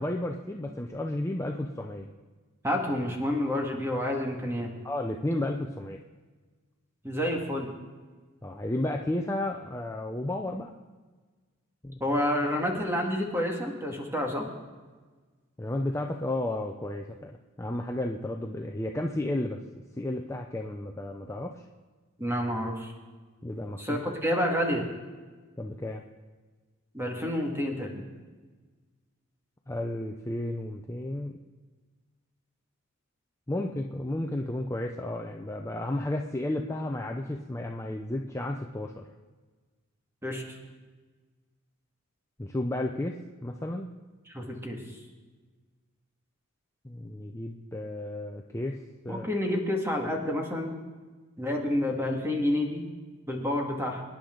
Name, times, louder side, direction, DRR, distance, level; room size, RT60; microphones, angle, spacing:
voice 1, 0.0-2.1 4.8-6.0 8.4-10.7 11.8-12.0 15.6-19.6 20.0-21.6 23.4-24.0 25.6-26.0 29.7-31.4 33.5-39.1 42.4-43.9 46.8-49.3, left 1 dB, 15° left, 2 dB, 0.6 m, -33 dB
voice 2, 2.6-4.7 7.0-7.7 12.0-14.4 22.2-22.9 23.8-24.9 26.9-28.0 40.2-40.4 44.3-44.8 49.1-50.7 51.4-52.8 53.3-54.0, left 1 dB, 10° right, 0 dB, 2.0 m, -29 dB
25.0 x 10.5 x 3.9 m, 1.4 s
head